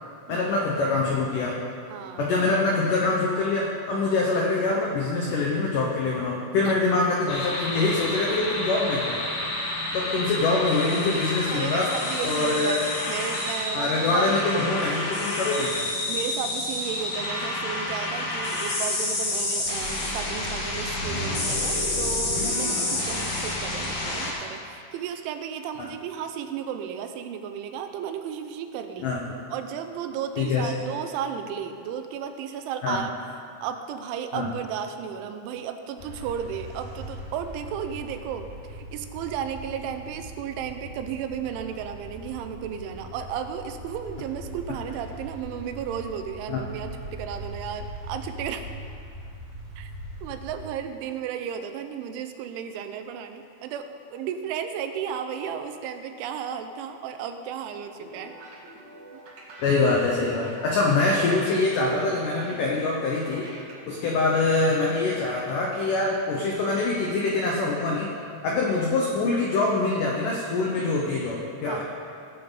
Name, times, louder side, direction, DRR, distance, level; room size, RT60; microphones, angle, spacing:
voice 1, 0.3-1.6 2.2-9.2 9.9-11.9 12.2-12.9 13.7-15.9 25.8-25.9 29.0-29.2 30.4-30.7 32.8-33.0 34.3-34.5 46.5-46.6 59.6-63.5 63.9-68.1 68.4-71.8, left 3 dB, 85° left, -2 dB, 1.8 m, -24 dB
voice 2, 1.9-2.3 6.7-6.8 11.5-14.8 16.1-29.1 29.5-33.1 33.6-48.7 49.8-49.9 50.2-58.4 59.1-59.2 71.7-71.8, right 8 dB, 90° right, 7 dB, 3.1 m, -34 dB
sound 1, 7.3-24.3, left 2 dB, 55° left, 3.1 m, -29 dB
sound 2, 36.0-50.6, equal, 35° right, 2.1 m, -41 dB
sound 3, 58.0-65.9, right 1 dB, 55° right, 2.0 m, -46 dB
19.0 x 7.9 x 4.0 m, 2.5 s
omnidirectional pair, 5.4 m